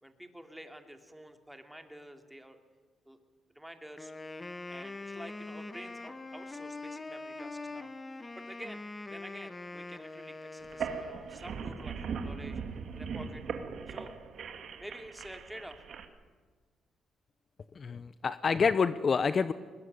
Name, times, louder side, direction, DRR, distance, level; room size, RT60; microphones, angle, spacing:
voice 1, 0.0-2.6 3.1-3.2 3.5-4.1 4.7-7.9 8.4-8.8 9.1-13.5 13.9-14.1 14.8-15.8, equal, 5° right, 6 dB, 2.7 m, -49 dB
Wind instrument woodwind instrument, 4.0-11.6, left 2 dB, 20° left, 1.4 m, -43 dB
sound 1, 10.6-16.0, right 6 dB, 60° right, 2.2 m, -39 dB
voice 2, 17.7-19.5, left 5 dB, 40° left, 14 dB, 0.8 m, -27 dB
21.0 x 20.0 x 9.6 m, 1.5 s
cardioid pair, 90°, 0 cm